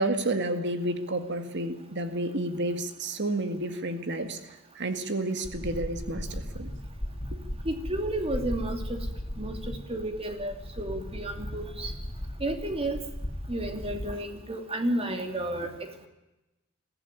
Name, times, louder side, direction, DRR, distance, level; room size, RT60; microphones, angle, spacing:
voice 1, 0.0-4.4 4.8-6.7 7.3-7.4, right 1 dB, 55° right, 8 dB, 1.9 m, -30 dB
sound 1, 5.4-14.1, equal, 45° left, 2.8 m, -37 dB
voice 2, 7.6-9.1 9.4-11.9 12.4-13.0 13.5-16.1, right 1 dB, 25° right, 5 dB, 2.8 m, -32 dB
22.5 x 15.0 x 9.8 m, 1.0 s
head